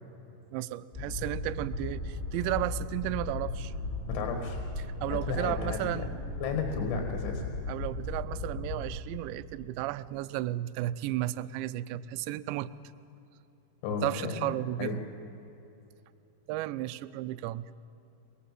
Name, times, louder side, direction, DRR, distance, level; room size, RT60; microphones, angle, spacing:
voice 1, 0.5-3.7 4.8-6.1 7.7-12.7 14.0-15.0 16.5-17.7, right 15 dB, 80° right, 14 dB, 2.8 m, -33 dB
sound 1, 0.9-9.0, left 3 dB, 30° left, 0.9 m, -36 dB
voice 2, 4.1-4.6 5.3-5.8 6.4-7.4 13.8-14.5 14.8-15.0, left 5 dB, 80° left, 3 dB, 4.2 m, -33 dB
24.5 x 21.0 x 7.5 m, 2.9 s
omnidirectional pair, 5.4 m